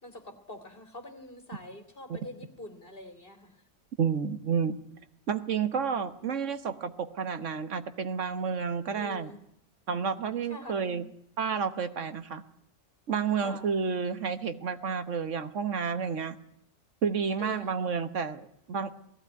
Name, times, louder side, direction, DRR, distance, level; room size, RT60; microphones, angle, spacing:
voice 1, 0.0-3.6 8.9-9.4 10.5-11.0 13.4-13.7 17.4-17.8, left 1 dB, 45° left, 7 dB, 2.9 m, -45 dB
voice 2, 4.0-4.8 5.3-9.3 9.9-11.0 11.4-12.4 13.1-16.4 17.0-18.9, right 6 dB, 70° right, 11 dB, 1.5 m, -30 dB
18.5 x 15.5 x 9.5 m, 0.72 s
omnidirectional pair, 1.3 m